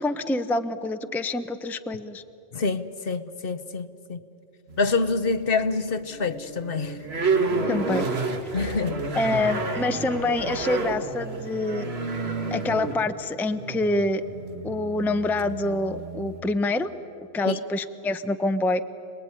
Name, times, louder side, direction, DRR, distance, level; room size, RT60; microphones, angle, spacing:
voice 1, 0.0-2.2 7.7-8.1 9.1-11.9 12.5-14.2 14.6-16.9 17.3-18.8, left 2 dB, ahead, 0.6 m, -26 dB
voice 2, 2.5-4.2 4.8-7.0 8.5-9.1 17.5-17.6, left 4 dB, 60° left, 1.1 m, -26 dB
sound 1, 4.7-5.4 5.9-16.4, right 3 dB, 65° right, 1.9 m, -30 dB
26.5 x 20.0 x 9.7 m
omnidirectional pair, 1.1 m